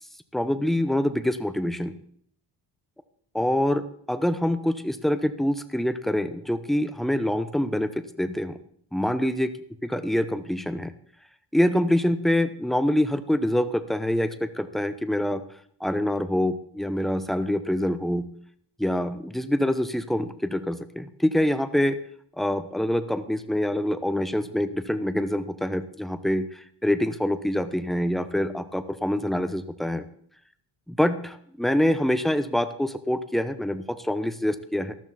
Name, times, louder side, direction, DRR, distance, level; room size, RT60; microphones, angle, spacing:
voice 1, 0.3-2.0 3.3-7.9 8.2-8.6 8.9-9.5 9.8-10.9 11.5-15.4 15.8-18.3 18.8-22.0 22.4-30.1 30.9-34.9, left 1 dB, ahead, 11 dB, 0.8 m, -25 dB
13.0 x 12.5 x 4.3 m, 0.63 s
cardioid pair, 100°, 43 cm